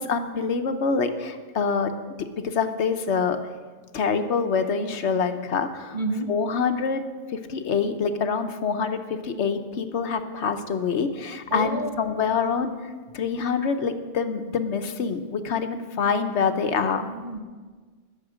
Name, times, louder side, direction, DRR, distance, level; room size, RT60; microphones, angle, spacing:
voice 1, 0.0-3.4 3.9-6.0 6.3-7.0 7.3-17.1, left 5 dB, 80° left, 8 dB, 1.1 m, -26 dB
voice 2, 5.9-6.3 11.5-12.4 17.0-17.4, right 2 dB, 45° right, 3 dB, 1.4 m, -30 dB
20.0 x 7.2 x 5.0 m, 1.4 s
omnidirectional pair, 1.2 m